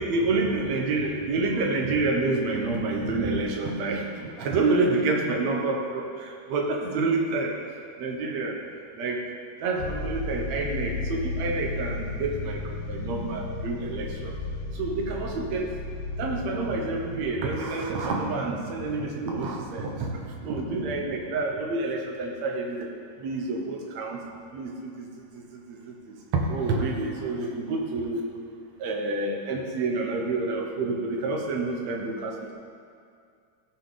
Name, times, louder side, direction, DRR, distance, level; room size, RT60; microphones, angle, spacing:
voice 1, 0.0-7.6 8.0-8.6 9.0-9.2 9.6-14.3 14.7-15.7 16.2-22.9 23.2-24.2 24.5-25.1 25.3-28.2 28.8-32.5, right 3 dB, 70° right, 1 dB, 2.3 m, -28 dB
sound 1, 9.8-17.2, left 3 dB, 65° left, 1.8 m, -34 dB
15.5 x 6.6 x 4.1 m, 2.2 s
omnidirectional pair, 3.3 m